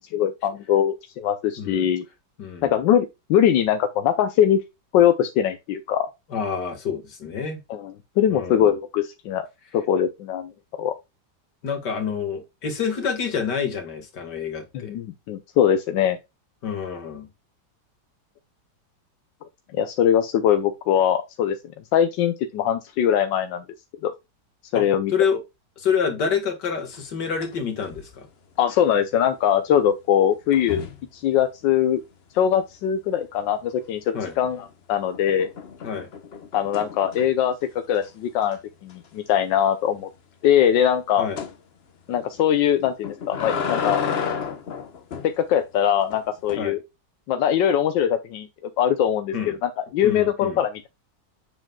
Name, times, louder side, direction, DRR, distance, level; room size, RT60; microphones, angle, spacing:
voice 1, 0.1-2.0 2.6-4.6 4.9-6.1 7.7-9.5 9.7-10.9 14.7-16.2 19.7-21.6 21.9-23.6 24.0-24.1 24.7-25.1 28.6-30.8 31.1-32.0 32.3-35.5 36.5-37.6 37.9-40.1 40.4-41.3 42.1-44.0 45.2-46.8 47.3-48.5 48.8-50.9, left 9 dB, 90° left, 1.4 m, -22 dB
voice 2, 1.6-1.9 2.4-2.7 6.3-7.6 8.3-8.7 11.6-14.9 16.6-17.3 24.7-24.9 25.1-25.4 25.8-28.3 34.1-34.3 35.8-36.1 41.2-41.4 46.6-46.8 49.3-49.6 50.0-50.6, left 6 dB, 70° left, 2.4 m, -27 dB
sound 1, 26.9-27.6 27.8-28.2 30.5-31.1 34.2-34.7 35.1-37.5 37.9-38.1 38.4-38.5 38.9-39.0 41.4-41.6 42.8-45.3 46.1-46.6, left 6 dB, 45° left, 0.9 m, -31 dB
7.4 x 7.4 x 2.3 m
omnidirectional pair, 1.9 m